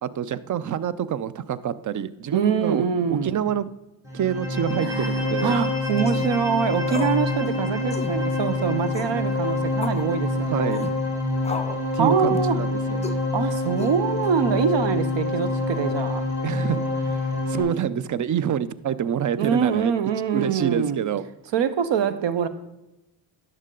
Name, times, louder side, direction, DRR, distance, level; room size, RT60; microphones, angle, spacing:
voice 1, 0.0-2.8 3.1-3.7 4.1-5.6 10.5-10.8 11.9-13.2 16.4-19.9 20.3-21.2, right 9 dB, 40° right, 17 dB, 0.5 m, -27 dB
voice 2, 2.3-3.4 4.8-10.9 12.0-12.6 13.3-16.3 19.4-21.0 21.5-22.5, right 7 dB, 60° right, 13 dB, 0.8 m, -24 dB
sound 1, 4.0-17.6, left 2 dB, 5° right, 2.8 m, -26 dB
sound 2, 6.0-6.3 6.9-7.2 7.5-7.6 7.9-8.2 8.9-9.2 9.8-10.0 10.7-11.0 11.4-11.8 12.3-12.5 13.0-13.2 13.8-14.3, left 3 dB, 15° left, 0.5 m, -34 dB
10.5 x 6.5 x 3.8 m, 0.96 s
cardioid pair, 70°, 50 cm